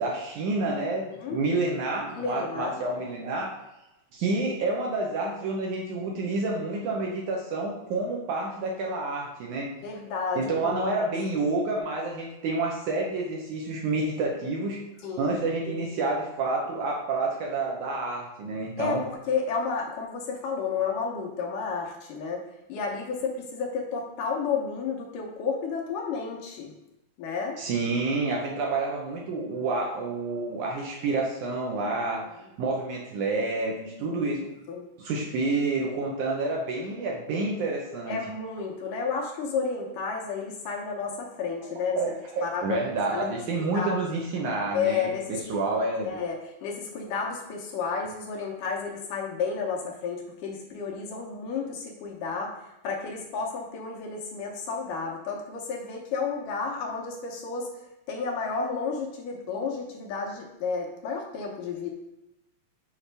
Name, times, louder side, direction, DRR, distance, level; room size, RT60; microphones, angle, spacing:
voice 1, 0.0-3.6 4.1-9.7 10.4-14.8 15.2-19.0 27.6-32.2 32.6-34.5 35.0-38.2 42.0-45.1 45.5-46.1, right 3 dB, 70° right, -1 dB, 2.0 m, -29 dB
voice 2, 2.2-2.8 9.8-11.1 15.0-15.3 18.8-19.0 19.3-22.4 22.7-26.7 27.2-27.6 34.0-34.3 34.7-34.9 38.1-42.0 42.4-42.8 43.1-43.3 43.7-44.0 44.7-45.6 46.0-52.5 52.8-57.7 58.1-61.9, left 5 dB, 75° left, 0 dB, 2.3 m, -31 dB
7.3 x 4.9 x 3.3 m, 0.92 s
omnidirectional pair, 4.1 m